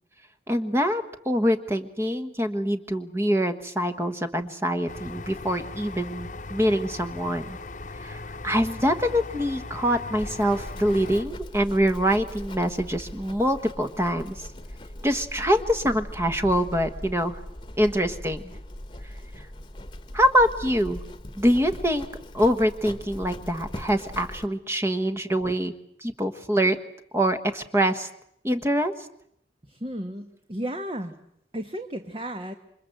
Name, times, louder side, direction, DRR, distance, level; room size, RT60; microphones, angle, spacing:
voice 1, 0.5-7.6 8.0-14.5 15.0-17.4 17.8-18.4 19.0-19.5 20.1-21.0 21.4-22.1 22.3-25.7 26.0-26.8 27.1-28.1 28.4-29.1, equal, 15° right, 7 dB, 1.3 m, -25 dB
sound 1, 4.9-11.2, left 3 dB, 45° left, 1.1 m, -38 dB
Livestock farm animals working animals, 10.2-24.5, left 1 dB, 25° left, 1.3 m, -40 dB
voice 2, 29.7-31.2 31.5-32.5, right 1 dB, 30° right, 7 dB, 1.4 m, -33 dB
28.0 x 25.0 x 7.9 m, 0.72 s
head